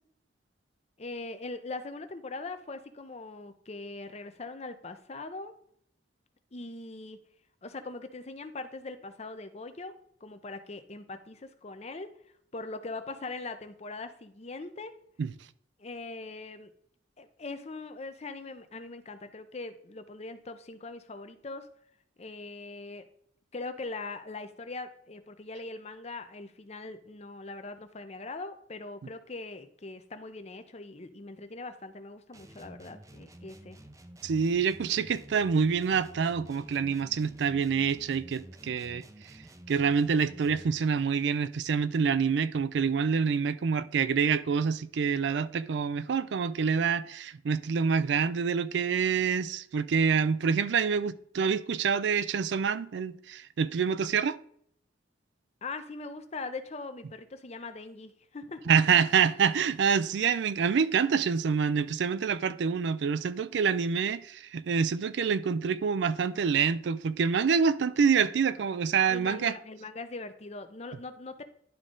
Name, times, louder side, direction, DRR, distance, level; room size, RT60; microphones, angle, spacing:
voice 1, 1.0-5.5 6.5-7.2 7.6-10.0 10.2-12.1 12.5-14.9 15.8-16.7 17.2-21.7 22.2-23.0 23.5-33.8 55.6-58.8 69.1-71.4, left 3 dB, 35° left, 0.6 m, -41 dB
sound 1, 32.3-40.8, right 1 dB, 20° right, 0.5 m, -50 dB
voice 2, 34.2-39.0 39.7-54.4 58.7-69.5, right 6 dB, 70° right, 0.4 m, -26 dB
11.0 x 3.7 x 3.7 m
head